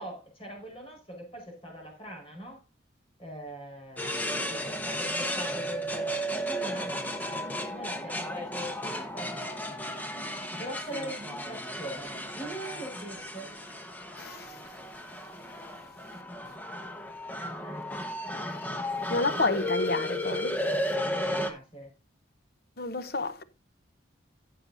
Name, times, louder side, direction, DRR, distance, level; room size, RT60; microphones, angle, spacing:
voice 1, 0.0-2.7 3.2-9.7 10.5-13.5 16.1-16.6 17.4-18.0 21.0-21.9, equal, 30° left, 5.1 m, -42 dB
sound 1, 4.0-21.5, equal, 10° left, 1.2 m, -34 dB
voice 2, 19.1-20.5 22.8-23.4, left 2 dB, 55° left, 0.9 m, -29 dB
14.5 x 6.8 x 2.7 m
head